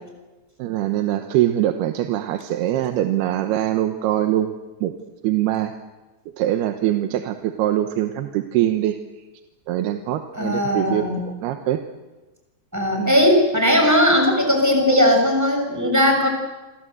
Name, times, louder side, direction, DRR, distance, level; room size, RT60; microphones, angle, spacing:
voice 1, 0.6-4.5 4.8-4.9 5.2-5.7 6.4-9.0 9.7-11.8 13.0-13.1, right 13 dB, 85° right, 7 dB, 3.1 m, -23 dB
voice 2, 10.3-11.2 12.7-16.3, left 1 dB, 5° right, 2 dB, 6.2 m, -18 dB
28.5 x 23.5 x 8.0 m, 1.1 s
omnidirectional pair, 4.5 m